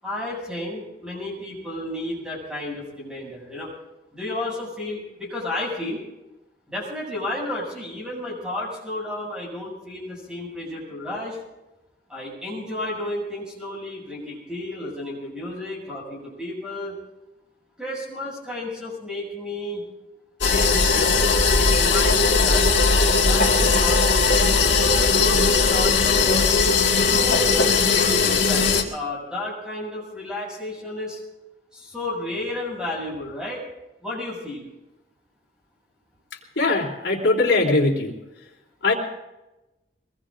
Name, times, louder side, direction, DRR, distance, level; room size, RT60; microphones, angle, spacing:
voice 1, 0.0-3.7 4.1-6.0 6.7-11.4 12.1-16.9 17.8-19.8 20.5-22.7 23.2-26.5 27.0-31.2 31.7-33.6 34.0-34.7, left 1 dB, 5° right, -4 dB, 7.6 m, -32 dB
sound 1, 20.4-28.8, left 4 dB, 90° left, 2.1 m, -19 dB
voice 2, 36.5-38.1 38.8-38.9, left 2 dB, 75° left, -1 dB, 3.4 m, -20 dB
23.5 x 22.0 x 2.6 m, 0.99 s
head